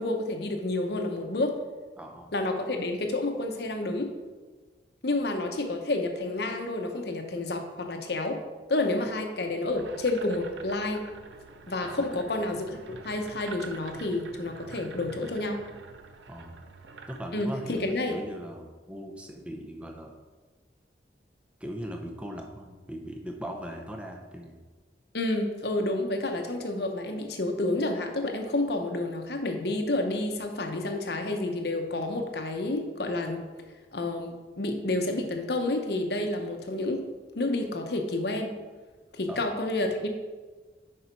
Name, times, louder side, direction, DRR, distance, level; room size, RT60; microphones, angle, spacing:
voice 1, 0.0-1.6 2.3-4.1 5.0-8.4 8.7-11.0 11.7-15.6 17.3-18.1 25.1-33.4 33.9-37.0 37.3-38.5 39.1-40.1, left 2 dB, 60° left, 4 dB, 0.9 m, -29 dB
voice 2, 2.0-2.3 12.1-12.2 16.3-16.6 17.1-20.2 21.6-24.6 39.3-39.4, equal, 5° right, 2 dB, 0.7 m, -39 dB
sound 1, 9.7-17.9, right 4 dB, 80° right, 0.6 m, -47 dB
6.7 x 5.5 x 4.6 m, 1.3 s
head